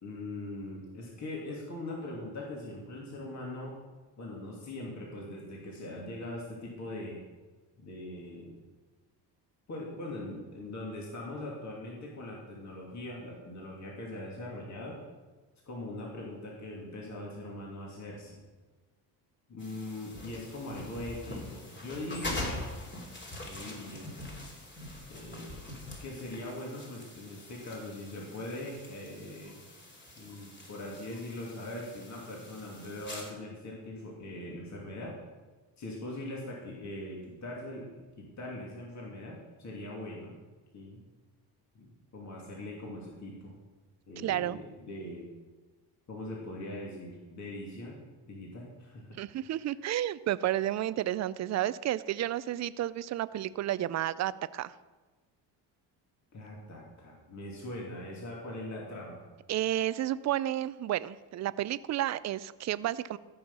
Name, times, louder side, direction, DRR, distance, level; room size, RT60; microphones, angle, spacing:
voice 1, 0.0-3.8 4.2-7.2 7.8-8.6 9.7-15.0 15.7-18.4 19.5-22.6 23.4-24.1 25.1-25.6 26.0-29.6 30.1-35.2 35.8-40.4 40.7-41.0 41.7-41.9 42.1-43.6 44.1-45.3 46.1-48.0 48.2-49.2 56.3-59.3, left 1 dB, 45° left, -3 dB, 2.7 m, -41 dB
sound 1, 19.6-33.3, left 2 dB, 25° left, 3.1 m, -43 dB
voice 2, 44.2-44.6 49.2-54.7 59.5-63.2, right 13 dB, 45° right, 17 dB, 0.5 m, -31 dB
14.0 x 6.4 x 5.5 m, 1.3 s
cardioid pair, 95°, 41 cm